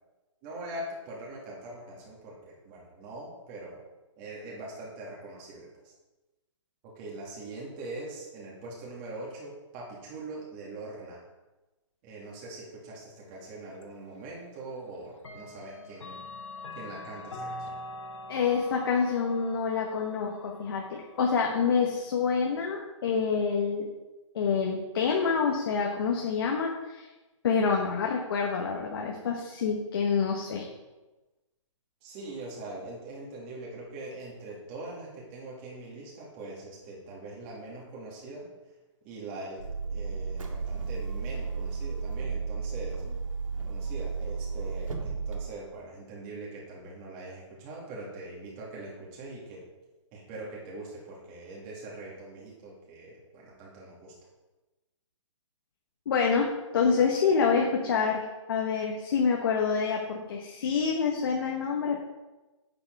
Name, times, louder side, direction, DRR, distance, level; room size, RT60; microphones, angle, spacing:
voice 1, 0.4-3.8 4.2-5.7 7.0-11.2 12.0-16.2 16.8-17.7 32.0-38.5 39.0-39.6 39.9-43.0 43.6-49.6 50.1-54.1, right 2 dB, 25° right, -4 dB, 2.5 m, -42 dB
Clock, 13.8-13.9 15.2-21.9, left 2 dB, 70° left, 1.4 m, -44 dB
voice 2, 18.3-23.9 24.3-27.1 27.4-30.7 56.0-62.1, left 5 dB, 45° left, 0 dB, 1.3 m, -27 dB
sound 1, 39.6-45.4, right 4 dB, 85° right, 1.9 m, -33 dB
8.6 x 7.8 x 4.7 m, 1.1 s
hypercardioid pair, 165°, 17 cm